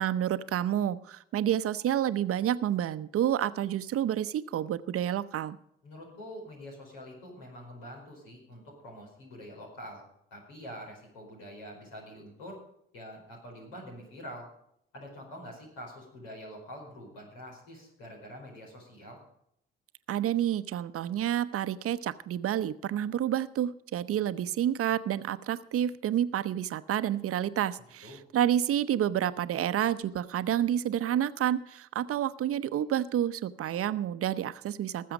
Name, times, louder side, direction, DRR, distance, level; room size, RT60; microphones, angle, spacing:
voice 1, 0.0-5.6 20.1-35.1, right 11 dB, 50° right, 14 dB, 0.8 m, -29 dB
voice 2, 5.8-10.0 10.3-12.6 12.9-14.5 14.9-19.2 28.0-28.2, equal, 80° left, 0 dB, 4.8 m, -45 dB
19.5 x 7.7 x 5.0 m, 0.74 s
hypercardioid pair, 45°, 29 cm